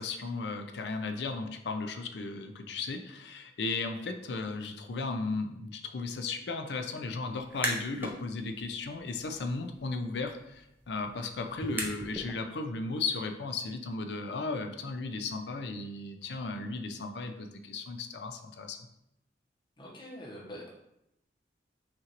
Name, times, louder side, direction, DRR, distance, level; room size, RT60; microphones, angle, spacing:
voice 1, 0.0-18.8, left 3 dB, 70° left, 5 dB, 0.5 m, -35 dB
sound 1, 7.4-8.2 8.6-12.3, right 1 dB, 10° right, 0.5 m, -39 dB
voice 2, 19.8-20.7, equal, 25° left, -5 dB, 1.0 m, -44 dB
5.9 x 2.5 x 2.9 m, 0.83 s
head